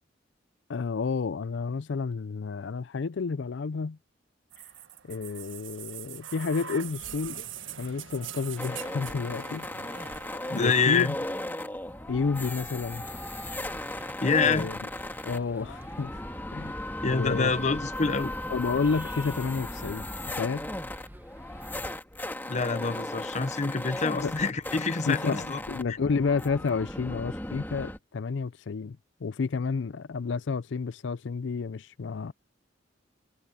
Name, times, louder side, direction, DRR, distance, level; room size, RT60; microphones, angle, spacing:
voice 1, 0.7-4.0 5.0-7.5 7.8-9.7 10.5-11.2 12.1-13.1 14.4-14.8 15.2-16.2 16.5-16.8 17.1-17.5 18.5-20.7 24.2-24.3 25.1-32.3, left 4 dB, 70° left, 0.5 m, -30 dB
sound 1, 4.5-12.4 13.4-13.5, right 9 dB, 85° right, 1.5 m, -43 dB
sound 2, 8.6-28.0, left 1 dB, 10° left, 2.2 m, -36 dB
voice 2, 10.5-11.1 14.2-14.7 17.0-18.3 22.5-25.6, left 4 dB, 35° left, 0.7 m, -26 dB
sound 3, 13.0-22.0, equal, 10° right, 1.5 m, -48 dB
head